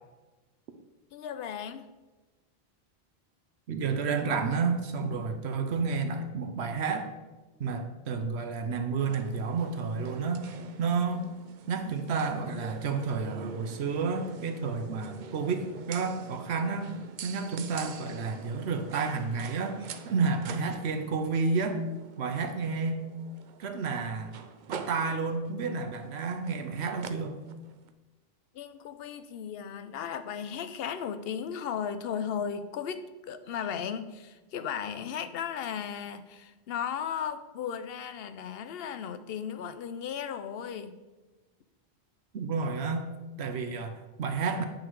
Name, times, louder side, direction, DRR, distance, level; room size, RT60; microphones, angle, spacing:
voice 1, 1.1-1.9 28.5-41.0, left 8 dB, 70° left, 11 dB, 0.8 m, -36 dB
voice 2, 3.7-7.1 7.6-10.4 10.8-11.3 11.7-17.0 17.2-21.8 22.2-23.0 23.6-24.4 24.7-27.4 42.3-43.1 43.4-44.7, right 4 dB, 85° right, 7 dB, 1.0 m, -30 dB
sound 1, 9.0-27.9, right 6 dB, 60° right, 0.6 m, -46 dB
8.8 x 3.9 x 4.6 m, 1.2 s
omnidirectional pair, 1.1 m